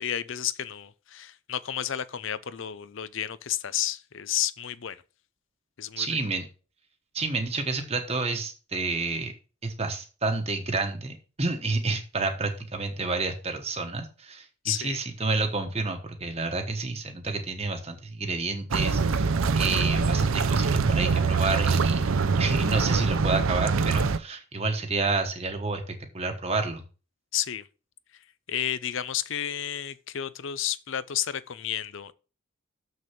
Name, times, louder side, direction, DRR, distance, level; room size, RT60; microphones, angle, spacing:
voice 1, 0.0-5.0 5.8-6.2 14.6-15.0 27.3-27.7 28.5-32.1, left 10 dB, 60° left, 0.6 m, -31 dB
voice 2, 6.0-6.5 7.1-9.3 9.6-26.8, right 3 dB, 30° right, 1.1 m, -29 dB
sound 1, 18.7-24.2, right 4 dB, 70° right, 0.6 m, -24 dB
6.9 x 6.5 x 5.9 m
head